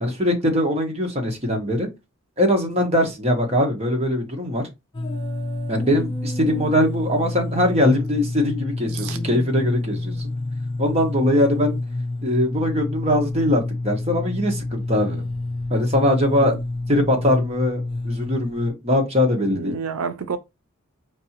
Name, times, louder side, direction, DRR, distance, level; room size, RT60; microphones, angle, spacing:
voice 1, 0.0-1.9 2.4-4.6 5.7-10.3 10.8-11.8 12.2-15.2 15.7-16.6 16.9-19.8, left 1 dB, 30° right, 1.2 m, -21 dB
sound 1, 4.9-18.7, left 2 dB, 20° left, 0.7 m, -28 dB
voice 2, 19.5-20.4, right 5 dB, 85° right, 0.5 m, -29 dB
5.2 x 2.7 x 2.9 m
head